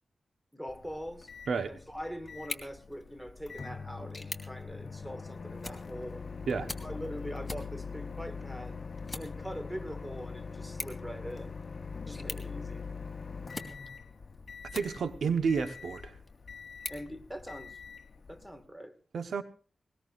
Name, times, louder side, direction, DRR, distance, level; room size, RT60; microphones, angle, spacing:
voice 1, 0.5-1.3 1.6-6.2 6.8-8.8 9.1-11.6 12.0-12.9 16.9-17.8 18.3-18.9, equal, 5° right, 2.1 m, -42 dB
Microwave oven, 0.7-18.6, left 5 dB, 50° left, 1.1 m, -43 dB
voice 2, 1.5-1.8 6.5-6.7 14.7-16.1 19.1-19.4, right 5 dB, 85° right, 1.3 m, -30 dB
sound 1, 2.3-15.3 15.8-17.9, left 2 dB, 20° left, 2.9 m, -47 dB
20.5 x 20.0 x 2.6 m
wide cardioid pair, 85°, 0 cm